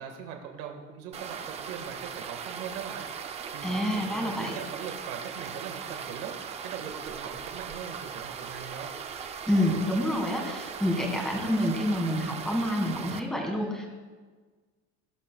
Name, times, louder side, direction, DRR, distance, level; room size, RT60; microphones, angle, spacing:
voice 1, 0.0-8.9, right 7 dB, 90° right, 3 dB, 1.6 m, -41 dB
sound 1, 1.1-13.2, right 7 dB, 20° right, 0.4 m, -39 dB
voice 2, 3.6-4.5 9.5-13.9, left 1 dB, ahead, 1 dB, 1.7 m, -28 dB
19.0 x 11.5 x 2.3 m, 1.4 s
cardioid pair, 180°, 32 cm